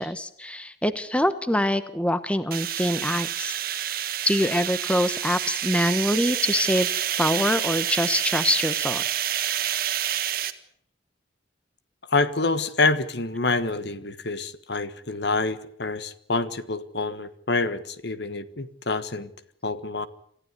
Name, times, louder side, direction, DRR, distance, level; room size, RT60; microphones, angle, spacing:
voice 1, 0.0-3.5 4.3-6.9 7.2-9.0, left 1 dB, 5° left, 1.0 m, -24 dB
sound 1, 2.5-10.5, right 11 dB, 50° right, 1.7 m, -28 dB
voice 2, 12.1-19.3 19.6-20.1, left 3 dB, 60° left, 1.4 m, -27 dB
27.0 x 15.0 x 9.6 m
head